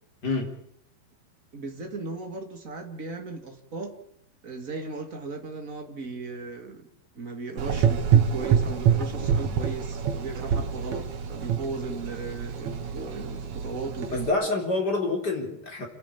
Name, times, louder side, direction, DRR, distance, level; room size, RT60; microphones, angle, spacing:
voice 1, 0.2-0.5 14.1-15.9, left 3 dB, 25° left, 1 dB, 4.2 m, -27 dB
voice 2, 1.5-4.0 4.4-6.9 7.1-14.3, right 3 dB, 25° right, 4 dB, 2.3 m, -36 dB
Gurgling / Engine, 7.6-14.3, right 8 dB, 55° right, 2.6 m, -26 dB
29.0 x 10.5 x 8.7 m, 0.71 s
omnidirectional pair, 4.4 m